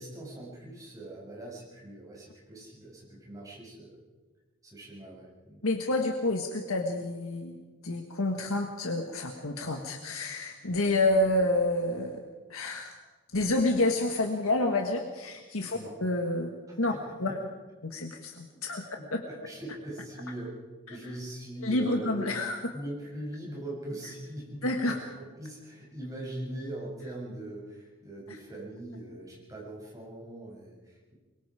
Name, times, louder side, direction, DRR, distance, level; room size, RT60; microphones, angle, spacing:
voice 1, 0.0-4.0 4.6-5.6 15.7-16.0 16.9-17.0 18.5-18.6 19.0-20.5 20.9-22.3 22.7-31.1, right 1 dB, 15° right, -5 dB, 7.1 m, -41 dB
voice 2, 5.6-7.6 7.8-12.2 12.5-12.9 13.3-16.9 17.2-17.4 17.8-18.8 19.1-19.2 21.6-22.6 24.6-25.0 28.3-28.4, left 2 dB, 75° left, 3 dB, 1.7 m, -29 dB
23.5 x 22.5 x 5.0 m, 1.3 s
head